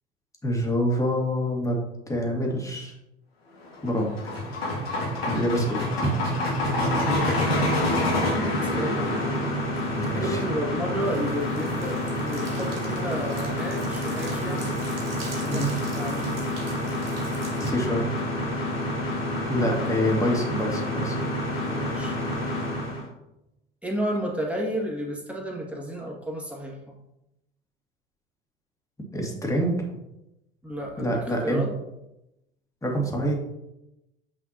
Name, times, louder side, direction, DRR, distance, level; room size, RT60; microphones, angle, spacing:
voice 1, 0.4-1.8 2.1-2.9 3.8-4.1 5.3-6.1 9.9-10.4 15.5-15.7 17.6-18.3 19.5-21.2 29.1-29.7 31.0-31.7 32.8-33.4, equal, 10° left, -1 dB, 2.2 m, -26 dB
sound 1, 3.6-23.0, left 1 dB, 80° left, 2.0 m, -28 dB
voice 2, 7.0-7.5 8.5-9.5 9.8-14.8 15.3-16.3 19.6-20.1 21.6-22.2 23.8-27.0 30.6-31.7, equal, 5° right, -3 dB, 2.2 m, -32 dB
sound 2, 10.9-17.7, right 4 dB, 80° right, 1.6 m, -44 dB
8.6 x 5.6 x 3.0 m, 0.90 s
figure-of-eight pair, 70°, 29 cm